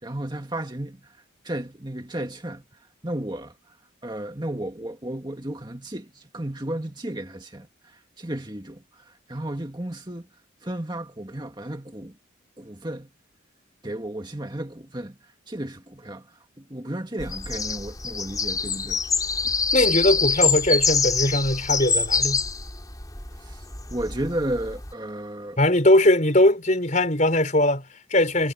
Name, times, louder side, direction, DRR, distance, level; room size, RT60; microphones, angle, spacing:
voice 1, 0.0-1.2 1.4-3.8 4.0-10.3 10.6-12.2 12.6-13.1 13.8-19.0 19.4-19.5 23.4-23.7 23.9-25.6, right 1 dB, 20° right, 1.9 m, -33 dB
sound 1, 17.2-24.9, left 4 dB, 20° left, 5.1 m, -25 dB
voice 2, 19.7-22.4 25.6-28.5, left 1 dB, 35° left, 5.3 m, -20 dB
head